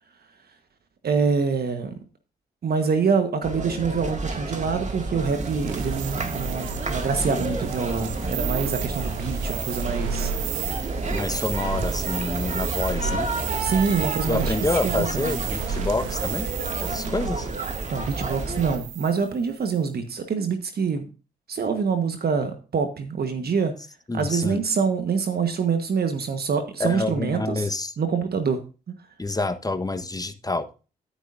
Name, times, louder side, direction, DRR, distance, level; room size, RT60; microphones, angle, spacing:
voice 1, 1.0-2.0 2.6-10.3 13.6-14.5 14.8-15.4 17.9-21.0 21.5-23.7 24.1-27.7 28.0-28.6 28.9-29.0, right 5 dB, 55° right, 7 dB, 1.4 m, -25 dB
sound 1, 3.4-18.8, right 3 dB, 40° right, 2.3 m, -30 dB
sound 2, 5.2-19.3, right 7 dB, 80° right, 1.1 m, -33 dB
voice 2, 11.1-13.3 14.3-16.5 16.8-17.5 24.1-24.6 26.8-27.9 29.2-30.7, left 2 dB, 20° left, 8 dB, 1.3 m, -27 dB
11.5 x 9.9 x 2.7 m, 0.34 s
hypercardioid pair, 40°, 20 cm